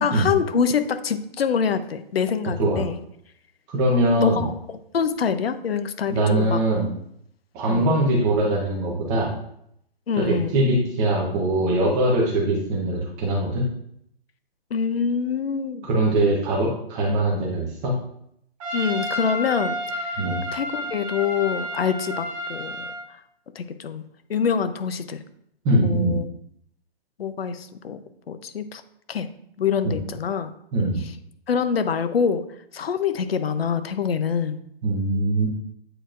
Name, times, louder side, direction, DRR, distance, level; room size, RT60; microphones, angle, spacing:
voice 1, 0.0-3.0 4.2-6.6 7.7-8.0 10.1-10.6 14.7-15.9 18.7-20.2 20.5-22.9 23.5-24.0 24.3-25.2 25.8-26.2 27.2-28.0 28.3-28.8 29.1-29.3 29.6-30.5 31.5-32.4 32.7-34.6, left 6 dB, 75° left, 11 dB, 0.7 m, -25 dB
voice 2, 3.7-4.5 6.1-6.9 7.5-9.3 10.2-13.7 15.8-17.9 20.2-20.4 25.6-26.2 29.8-30.0 30.7-31.0 34.8-35.5, right 1 dB, 10° right, -2 dB, 0.6 m, -22 dB
Trumpet, 18.6-23.0, equal, 35° right, 1.8 m, -31 dB
8.7 x 4.5 x 2.5 m, 0.72 s
hypercardioid pair, 160°, 30 cm